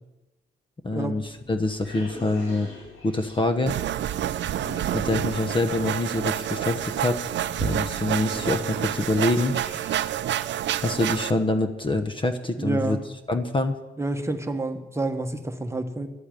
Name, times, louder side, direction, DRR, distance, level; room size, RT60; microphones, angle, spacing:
voice 1, 0.8-2.7 3.0-3.8 4.9-7.2 7.6-9.6 10.8-13.0 13.3-13.8, left 2 dB, 25° left, 9 dB, 1.0 m, -25 dB
sound 1, 1.4-10.3, left 1 dB, 80° left, 4.7 m, -44 dB
sound 2, 3.7-11.3, right 11 dB, 65° right, 0.6 m, -28 dB
voice 2, 12.6-13.1 14.0-16.1, right 2 dB, 15° right, 7 dB, 1.2 m, -28 dB
12.0 x 8.0 x 9.1 m, 1.1 s
cardioid pair, 90°, 20 cm